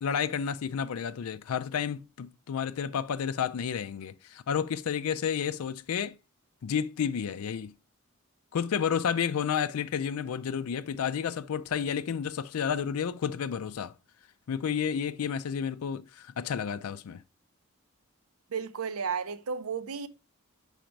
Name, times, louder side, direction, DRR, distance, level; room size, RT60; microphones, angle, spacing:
voice 1, 0.0-6.2 6.6-7.7 8.5-13.9 14.5-17.2, left 7 dB, 85° left, 0.4 m, -31 dB
voice 2, 18.5-20.1, right 6 dB, 85° right, 0.6 m, -33 dB
5.2 x 4.9 x 4.4 m
head